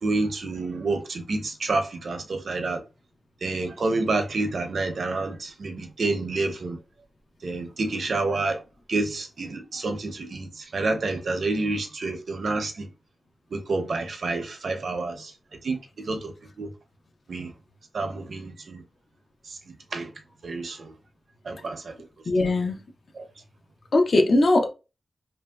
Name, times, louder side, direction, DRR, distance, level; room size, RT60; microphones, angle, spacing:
voice 1, 0.0-2.8 3.4-6.8 7.4-8.6 8.9-12.9 13.5-16.7 17.3-17.5 17.9-18.8 19.4-20.1 20.4-20.9 21.4-22.0 22.4-22.5 23.1-23.3, right 3 dB, 65° right, 0.5 m, -29 dB
voice 2, 22.3-22.8 23.9-24.7, left 2 dB, 60° left, 0.6 m, -20 dB
2.9 x 2.6 x 2.2 m
wide cardioid pair, 115°, 0 cm